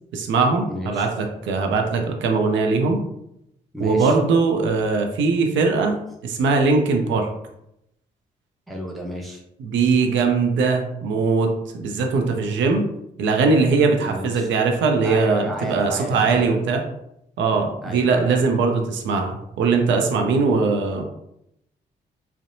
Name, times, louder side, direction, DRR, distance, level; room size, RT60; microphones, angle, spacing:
voice 1, 0.1-3.0 3.8-6.0 6.2-7.3 9.6-12.8 13.2-16.8 17.4-21.0, right 4 dB, 75° right, 3 dB, 0.5 m, -20 dB
voice 2, 0.7-1.1 3.7-4.2 8.7-9.4 14.0-14.5 15.0-16.6 17.8-18.4, right 1 dB, ahead, -1 dB, 0.5 m, -31 dB
2.6 x 2.0 x 2.6 m, 0.80 s
supercardioid pair, 45°, 20 cm